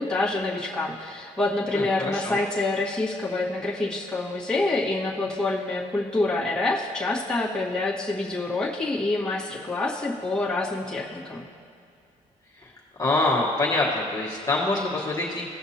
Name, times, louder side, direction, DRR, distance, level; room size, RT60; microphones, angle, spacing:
voice 1, 0.0-11.4, left 2 dB, 5° left, -7 dB, 1.5 m, -27 dB
voice 2, 1.7-2.4 13.0-15.5, left 2 dB, 25° left, -5 dB, 1.4 m, -25 dB
16.5 x 5.8 x 2.9 m, 2.4 s
cardioid pair, 120°, 14 cm